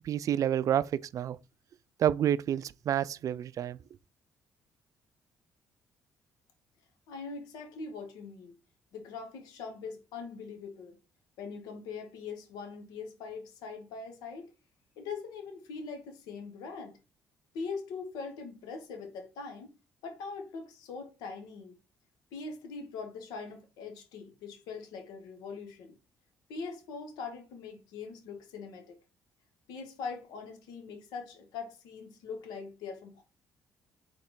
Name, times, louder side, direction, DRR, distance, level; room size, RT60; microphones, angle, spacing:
voice 1, 0.0-1.4 2.0-3.8, right 10 dB, 55° right, 0.3 m, -29 dB
voice 2, 7.1-8.5 8.9-11.0 11.4-14.5 15.0-17.0 17.5-19.7 20.0-21.8 22.3-26.0 26.5-29.0 29.7-33.2, left 5 dB, 75° left, 1.0 m, -42 dB
4.2 x 3.1 x 3.9 m
hypercardioid pair, 55°, 7 cm